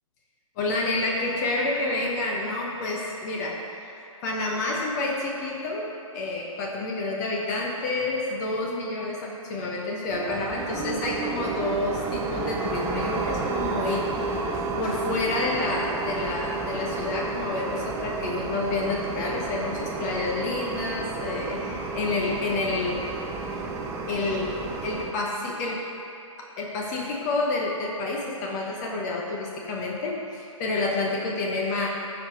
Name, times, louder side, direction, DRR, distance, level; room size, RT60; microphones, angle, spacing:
voice 1, 0.6-3.6 4.2-23.0 23.3-23.7 24.1-25.8 26.4-31.9, left 2 dB, 30° left, -2 dB, 1.1 m, -29 dB
sound 1, 10.1-25.1, right 4 dB, 15° right, 0.5 m, -31 dB
14.0 x 4.8 x 3.8 m, 2.8 s
figure-of-eight pair, 125°, 17 cm